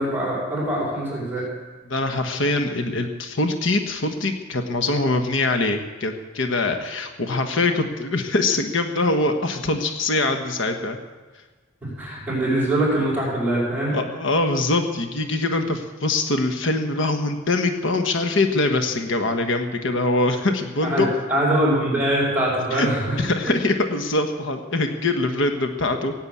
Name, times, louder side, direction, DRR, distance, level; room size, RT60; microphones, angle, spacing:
voice 1, 0.0-1.5 11.8-14.0 20.8-23.2, right 1 dB, 5° right, -11 dB, 5.7 m, -23 dB
voice 2, 1.9-11.0 13.9-21.1 22.7-22.9 23.2-26.1, left 2 dB, 60° left, 6 dB, 1.3 m, -23 dB
16.5 x 8.9 x 8.5 m, 1.3 s
head